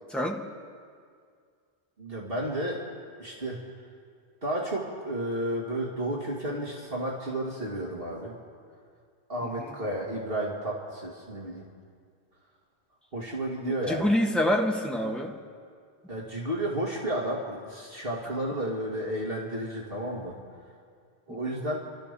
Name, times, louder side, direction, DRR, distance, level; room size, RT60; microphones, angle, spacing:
voice 1, 0.1-0.4 9.6-9.7 13.6-15.3 21.3-21.6, left 1 dB, ahead, 0 dB, 1.6 m, -27 dB
voice 2, 2.0-2.8 3.2-3.6 4.4-8.4 9.3-11.7 13.1-14.1 16.1-20.4 21.3-21.8, right 1 dB, 55° right, -3 dB, 2.7 m, -32 dB
29.5 x 13.5 x 6.9 m, 2.2 s
omnidirectional pair, 1.1 m